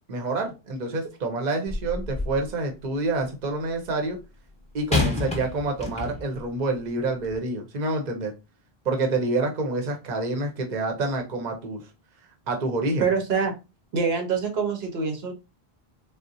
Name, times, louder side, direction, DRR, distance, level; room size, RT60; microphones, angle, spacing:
voice 1, 0.1-4.2 4.7-8.3 8.8-11.8 12.5-13.1, right 2 dB, 50° right, 0.8 m, -27 dB
sound 1, 1.7-2.5 4.9-6.4 7.2-7.4, left 2 dB, 5° left, 0.8 m, -28 dB
voice 2, 13.0-13.5 13.9-15.3, right 5 dB, 75° right, 0.9 m, -25 dB
3.7 x 2.1 x 2.6 m
omnidirectional pair, 1.1 m